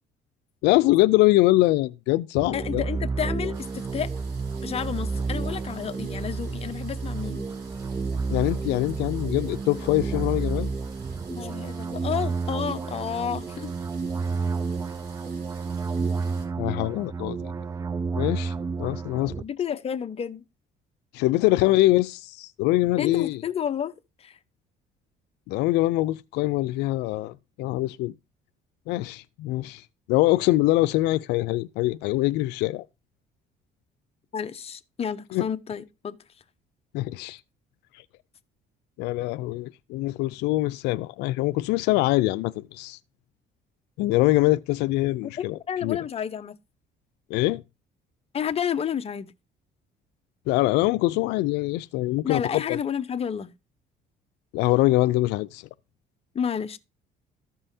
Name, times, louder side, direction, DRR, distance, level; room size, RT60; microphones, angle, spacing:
voice 1, 0.6-2.8 8.3-10.7 16.6-17.5 18.2-19.3 21.1-23.4 25.5-28.1 28.9-32.8 35.3-35.4 36.9-37.4 39.0-43.0 44.0-46.0 47.3-47.6 50.5-52.8 54.5-55.7, left 18 dB, 90° left, 0.4 m, -23 dB
sound 1, 2.4-19.4, right 4 dB, 20° right, 0.4 m, -30 dB
voice 2, 2.5-4.1 4.6-7.5 11.3-13.7 19.4-20.4 23.0-24.4 34.3-36.2 45.4-46.6 48.3-49.3 52.2-53.5 56.3-56.8, left 8 dB, 35° left, 0.8 m, -31 dB
sound 2, 3.5-16.5, right 3 dB, 80° right, 3.7 m, -51 dB
14.0 x 5.5 x 2.7 m
cardioid pair, 110°, 17 cm